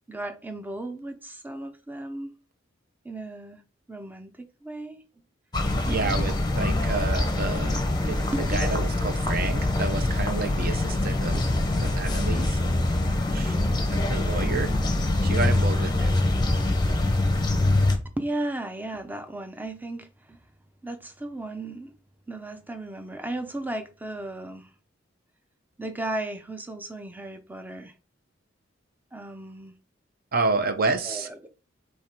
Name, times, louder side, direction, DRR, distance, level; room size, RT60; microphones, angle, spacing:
voice 1, 0.1-2.4 3.0-3.6 3.9-5.0 5.8-6.3 8.3-8.5 18.2-20.4 20.8-21.9 22.3-24.7 25.8-27.9 29.1-29.7 31.0-31.5, right 1 dB, 10° right, 0.5 m, -35 dB
sound 1, 5.5-18.0, left 2 dB, 20° left, 0.7 m, -24 dB
voice 2, 5.9-8.2 8.5-11.3 11.8-12.6 13.3-13.5 13.9-14.7 15.2-16.2 30.3-31.3, right 3 dB, 50° right, 0.6 m, -29 dB
3.6 x 3.2 x 4.4 m
head